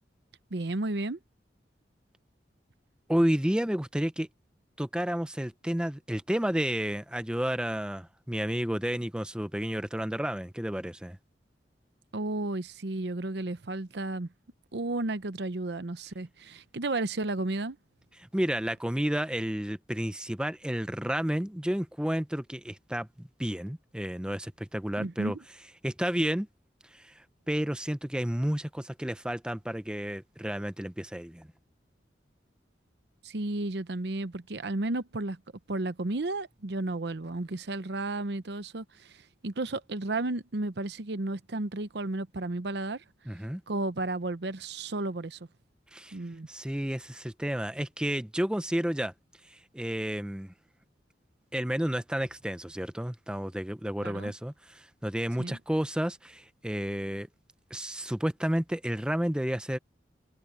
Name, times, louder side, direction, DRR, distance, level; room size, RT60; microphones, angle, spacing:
voice 1, 0.5-1.2 12.1-14.3 14.7-17.8 25.0-25.4 33.2-35.4 35.7-43.0 43.7-45.4 46.1-46.5 54.0-54.3 55.4-55.6, right 2 dB, 65° right, 0.8 m, -33 dB
voice 2, 3.1-4.3 4.8-11.2 18.3-25.4 25.8-26.5 26.9-31.5 43.3-43.6 45.9-46.2 46.5-49.1 49.5-50.5 51.5-57.3 57.7-59.8, equal, 5° right, 0.6 m, -31 dB
head